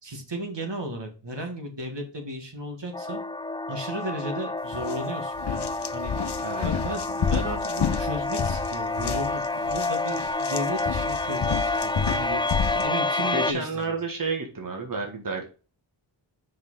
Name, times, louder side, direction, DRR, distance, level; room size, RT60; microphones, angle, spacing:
voice 1, 0.0-3.2 3.7-6.1 6.6-9.4 9.7-12.4 12.8-13.8, right 1 dB, 65° right, 3 dB, 2.0 m, -34 dB
sound 1, 2.9-13.5, left 2 dB, 10° left, 0.3 m, -29 dB
sound 2, 4.7-5.0 5.4-12.9, left 7 dB, 60° left, 0.7 m, -30 dB
voice 2, 13.3-15.4, right 4 dB, 45° right, 2 dB, 1.7 m, -31 dB
5.7 x 5.3 x 3.7 m, 0.34 s
wide cardioid pair, 50°, 46 cm